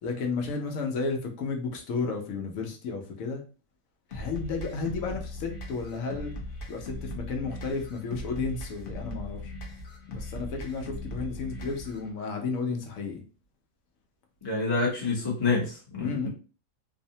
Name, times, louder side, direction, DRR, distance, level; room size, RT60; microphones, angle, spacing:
voice 1, 0.0-3.4 4.1-6.3 6.7-9.5 10.1-13.2 16.0-16.3, left 4 dB, 80° left, 2 dB, 1.0 m, -32 dB
sound 1, 4.1-12.1, left 1 dB, 55° left, 0.7 m, -39 dB
voice 2, 14.4-16.3, left 3 dB, 25° left, -3 dB, 0.7 m, -27 dB
2.7 x 2.0 x 2.7 m, 0.36 s
omnidirectional pair, 1.4 m